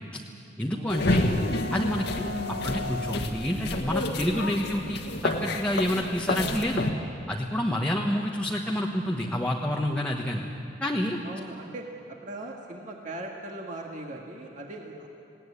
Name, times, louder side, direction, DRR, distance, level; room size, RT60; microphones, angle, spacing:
voice 1, 0.6-1.4 1.7-6.9 7.3-10.4 10.8-11.2, equal, 5° left, -1 dB, 1.1 m, -28 dB
sound 1, 0.9-6.9, left 2 dB, 65° left, 1.6 m, -29 dB
voice 2, 11.2-11.8 12.2-15.1, right 1 dB, 45° right, 0 dB, 1.9 m, -39 dB
20.0 x 17.5 x 9.8 m, 2.8 s
head